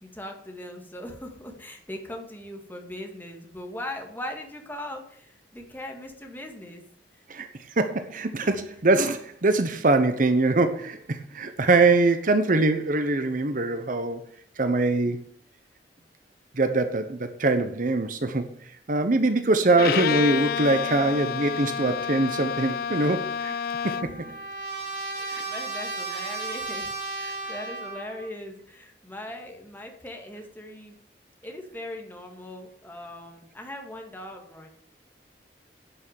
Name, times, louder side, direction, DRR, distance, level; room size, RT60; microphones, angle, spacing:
voice 1, 0.0-6.8 8.4-8.6 23.8-24.0 25.1-26.9 27.2-30.9 31.4-34.7, left 1 dB, 10° left, 2.3 m, -40 dB
voice 2, 7.8-14.2 14.6-15.2 16.5-18.5 18.9-23.5 23.8-24.1 25.3-25.4, right 2 dB, 50° right, 1.0 m, -23 dB
Bowed string instrument, 19.7-24.3, left 7 dB, 55° left, 0.4 m, -29 dB
Trumpet, 23.4-28.3, right 3 dB, 70° right, 5.2 m, -35 dB
11.0 x 6.4 x 9.2 m
head